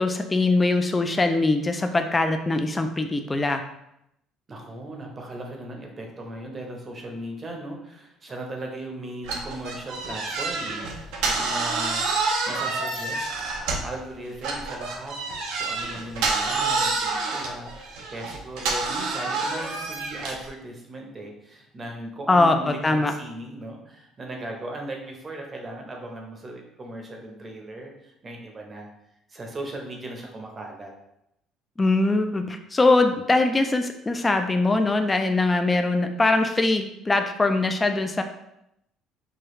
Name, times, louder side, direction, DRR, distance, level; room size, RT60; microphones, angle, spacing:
voice 1, 0.0-3.6 22.3-23.1 31.8-38.2, left 2 dB, 15° left, 6 dB, 0.3 m, -22 dB
voice 2, 4.5-28.9 29.3-30.9, right 1 dB, 25° right, 1 dB, 0.7 m, -38 dB
sound 1, 9.2-14.0 14.4-20.5, right 3 dB, 85° right, 0.7 m, -28 dB
4.8 x 2.3 x 3.1 m, 0.80 s
cardioid pair, 140°, 0 cm